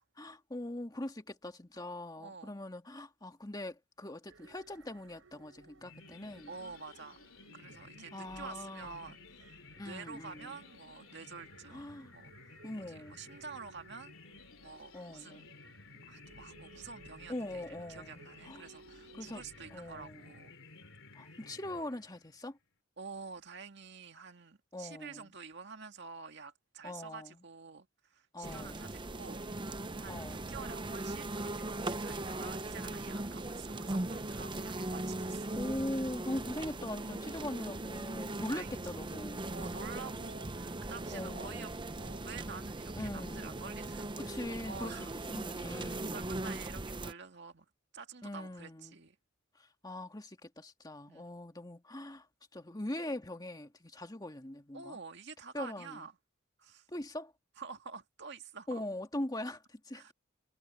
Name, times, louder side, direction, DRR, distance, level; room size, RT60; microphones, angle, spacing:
voice 1, 0.2-6.5 8.1-9.1 9.8-10.6 11.7-12.1 12.6-13.2 14.9-15.4 17.3-18.6 19.1-19.4 19.7-20.3 21.2-22.6 24.7-25.3 26.8-27.4 28.3-28.8 30.1-30.5 34.5-34.6 35.5-39.5 41.1-41.7 42.9-43.6 44.3-44.9 45.3-46.3 48.2-49.0 49.6-52.3 52.5-55.0 55.5-56.1 56.9-57.3 58.7-60.1, left 1 dB, 20° left, 2.0 m, -42 dB
voice 2, 2.2-2.5 6.5-7.3 7.5-12.5 12.8-14.1 14.6-15.5 16.0-20.5 23.0-35.6 38.3-38.8 39.5-41.7 42.0-44.4 44.7-45.1 45.6-47.7 47.9-49.2 51.1-51.2 54.7-56.1 56.6-56.9 57.6-58.8 59.9-60.1, right 5 dB, 60° right, 2.1 m, -49 dB
sound 1, 4.3-20.1, right 3 dB, 75° right, 4.8 m, -60 dB
sound 2, 5.8-22.4, left 3 dB, 75° left, 3.3 m, -55 dB
sound 3, 28.4-47.1, right 2 dB, 25° right, 0.8 m, -39 dB
head